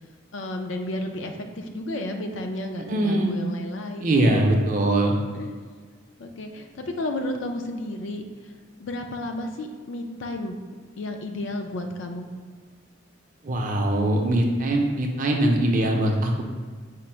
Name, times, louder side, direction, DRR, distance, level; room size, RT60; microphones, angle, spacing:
voice 1, 0.3-4.3 5.3-5.6 6.2-10.6 11.0-12.3, left 1 dB, 70° left, 4 dB, 0.4 m, -32 dB
voice 2, 2.9-3.3 4.0-5.2 13.4-16.4, right 1 dB, 40° right, 2 dB, 0.5 m, -22 dB
5.1 x 2.0 x 4.3 m, 1.5 s
head